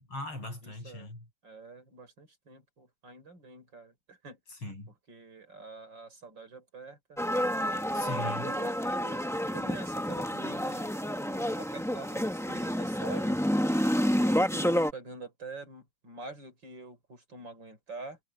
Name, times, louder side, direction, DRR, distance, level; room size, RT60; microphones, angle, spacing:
voice 1, 0.0-1.3 4.5-4.9 7.9-8.5, left 2 dB, 80° left, 9.0 m, -39 dB
voice 2, 0.6-1.1 1.4-4.4 5.1-7.2 8.0-9.3 9.5-10.9 11.2-13.4 14.0-18.2, right 3 dB, 60° right, 5.6 m, -46 dB
sound 1, 7.2-14.9, equal, ahead, 0.8 m, -29 dB
omnidirectional pair, 2.3 m